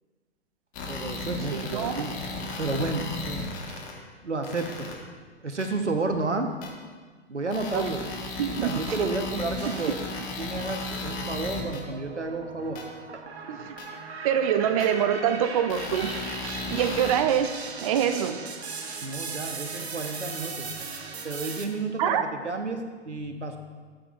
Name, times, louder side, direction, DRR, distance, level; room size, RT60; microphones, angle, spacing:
sound 1, 0.7-3.9 4.4-4.9 5.6-5.7 6.6-6.7 7.5-11.8 12.8-12.9 13.8-13.9 14.8-14.9 15.7-17.1, left 3 dB, 25° left, 1.2 m, -35 dB
voice 1, 0.9-2.2 2.6-3.8 4.2-4.9 5.4-6.5 7.3-8.0 8.5-10.0 10.4-12.8 16.9-17.1 19.0-20.7 21.2-23.6, right 3 dB, 90° right, 6 dB, 1.0 m, -31 dB
voice 2, 1.5-2.1 7.7-7.9 8.4-9.1 9.6-9.8 13.5-13.7 14.2-16.1 16.4-17.5 17.8-18.4 22.0-22.3, right 9 dB, 35° right, 9 dB, 0.4 m, -25 dB
sound 2, 9.6-10.4 10.9-21.6, right 4 dB, 65° right, 1.1 m, -38 dB
12.0 x 7.9 x 2.4 m, 1.5 s
figure-of-eight pair, 115°, 34 cm